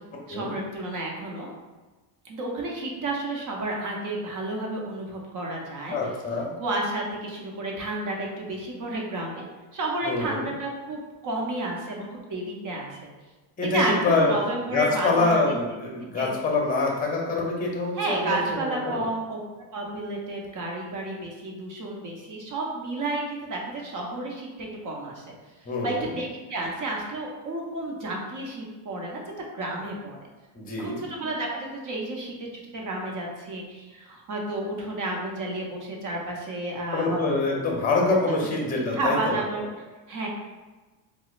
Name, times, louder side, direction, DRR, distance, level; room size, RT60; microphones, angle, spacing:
voice 1, 0.3-1.5 2.2-6.0 6.6-9.4 9.7-13.0 13.6-15.5 16.1-16.3 18.0-19.4 19.7-25.3 25.8-29.2 29.5-30.2 30.8-32.3 32.7-37.2 38.8-39.7 40.1-40.3, right 2 dB, 40° right, -1 dB, 0.8 m, -31 dB
voice 2, 5.9-6.5 10.0-10.5 13.6-14.3 14.7-19.0 25.7-26.1 30.5-31.0 36.9-39.4, left 3 dB, 20° left, -1 dB, 0.7 m, -25 dB
4.3 x 2.0 x 2.4 m, 1.2 s
supercardioid pair, 95°, 47 cm